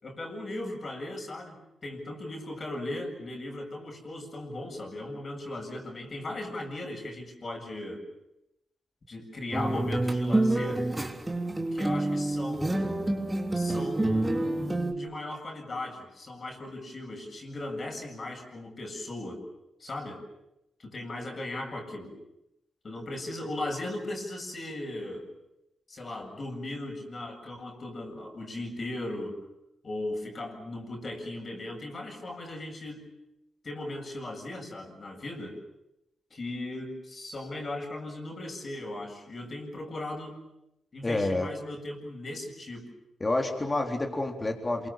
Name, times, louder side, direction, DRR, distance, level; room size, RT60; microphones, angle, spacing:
voice 1, 0.0-1.6 1.8-8.0 9.1-10.9 11.7-12.8 13.3-19.4 19.8-20.2 20.8-22.1 22.8-25.3 25.9-29.4 29.8-33.1 33.6-35.6 36.3-40.4 40.9-42.9, left 1 dB, 50° left, 3 dB, 7.6 m, -37 dB
sound 1, 9.5-14.9, right 2 dB, 20° right, 3.6 m, -28 dB
voice 2, 41.0-41.5 43.2-44.9, left 2 dB, 30° left, 3 dB, 3.9 m, -28 dB
27.5 x 24.5 x 7.4 m, 0.86 s
hypercardioid pair, 40°, 0 cm